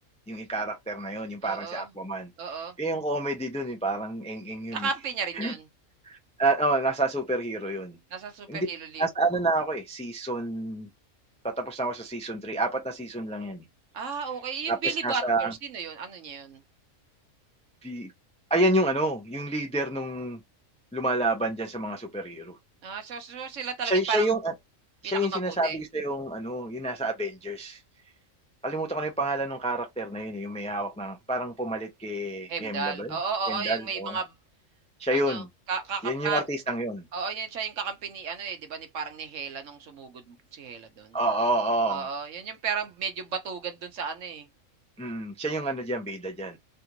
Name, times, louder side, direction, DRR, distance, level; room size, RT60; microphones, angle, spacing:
voice 1, 0.3-2.3 2.5-4.9 5.4-5.5 6.0-8.0 8.5-8.7 9.0-10.9 11.4-13.6 14.7-15.5 17.8-18.1 18.5-20.4 20.9-22.6 23.8-24.5 25.0-27.8 28.6-33.2 33.5-34.2 35.0-35.5 36.0-37.1 41.1-42.1 45.0-46.6, right 1 dB, 10° left, 0.4 m, -29 dB
voice 2, 1.4-1.9 2.4-2.8 4.7-5.6 8.1-9.0 13.9-16.6 22.8-24.3 25.0-25.8 32.5-34.3 35.1-36.4 37.1-41.2 41.9-44.5, right 5 dB, 70° right, 1.2 m, -33 dB
3.3 x 2.5 x 2.8 m
omnidirectional pair, 1.4 m